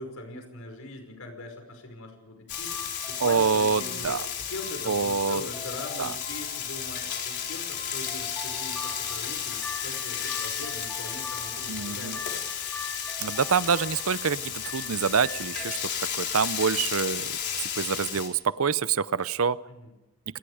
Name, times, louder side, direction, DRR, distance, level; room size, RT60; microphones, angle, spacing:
voice 1, 0.0-2.8 3.1-4.2 4.5-12.3 19.7-19.9, left 2 dB, 80° left, 5 dB, 5.5 m, -41 dB
Frying (food), 2.5-18.3, left 8 dB, 55° left, 4.1 m, -33 dB
sound 1, 2.5-15.8, left 3 dB, 10° left, 4.7 m, -43 dB
voice 2, 3.2-4.2 4.9-5.4 6.0-6.1 11.7-12.2 13.2-17.4 17.8-19.6, right 6 dB, 75° right, 17 dB, 0.7 m, -26 dB
27.5 x 19.0 x 5.0 m, 0.99 s
head